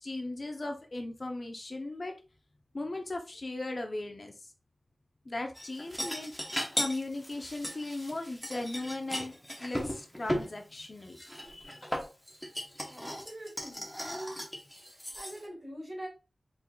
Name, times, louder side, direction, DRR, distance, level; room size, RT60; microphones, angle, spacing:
voice 1, 0.0-2.1 2.7-4.5 5.3-11.8, left 2 dB, 45° left, 4 dB, 0.6 m, -38 dB
sound 1, 5.6-10.5 11.1-15.4, equal, 5° left, 0.9 m, -37 dB
voice 2, 12.9-14.4 14.8-16.1, right 1 dB, 35° right, -3 dB, 2.4 m, -44 dB
4.4 x 3.9 x 2.3 m, 0.32 s
wide cardioid pair, 85°, 0 cm